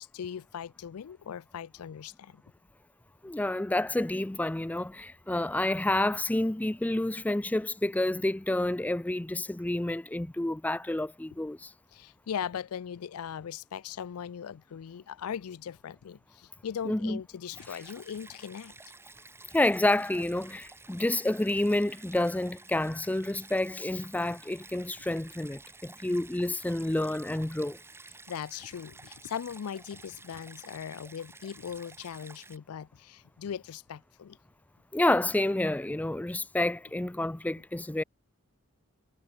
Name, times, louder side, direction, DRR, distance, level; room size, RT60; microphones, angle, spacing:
voice 1, 0.0-2.4 11.9-18.7 28.3-34.4, left 8 dB, 75° left, 0.4 m, -39 dB
voice 2, 3.2-11.7 16.9-17.2 19.5-27.8 34.9-38.0, left 1 dB, 5° left, 0.4 m, -29 dB
Stream, 17.6-32.6, right 3 dB, 10° right, 1.4 m, -52 dB
head